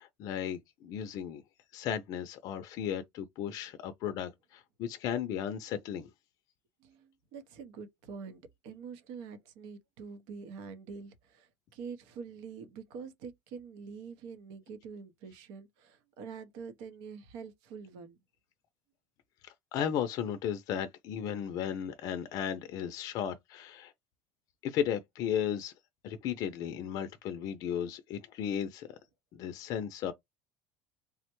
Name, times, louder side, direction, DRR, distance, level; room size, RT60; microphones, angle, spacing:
voice 1, 0.0-1.4 1.7-6.1 19.4-23.9 24.6-25.7 26.0-28.9 29.3-30.1, left 9 dB, 55° left, 0.4 m, -35 dB
voice 2, 6.8-18.2, right 5 dB, 80° right, 0.7 m, -46 dB
3.3 x 2.1 x 2.9 m
cardioid pair, 130°, 7 cm